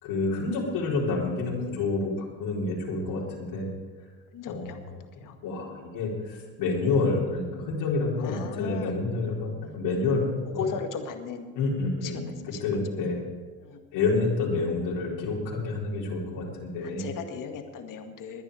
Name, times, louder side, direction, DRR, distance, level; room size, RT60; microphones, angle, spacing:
voice 1, 0.0-3.7 4.5-5.1 5.4-10.2 10.5-10.6 11.5-12.3 12.6-13.2 13.9-17.1, left 3 dB, 65° left, -5 dB, 4.5 m, -28 dB
voice 2, 4.3-4.8 5.2-5.4 8.2-9.0 9.6-9.7 10.6-11.6 12.0-12.6 13.6-13.8 16.8-18.4, left 6 dB, 45° left, 6 dB, 1.9 m, -36 dB
20.5 x 10.5 x 5.0 m, 1.4 s
hypercardioid pair, 75°, 44 cm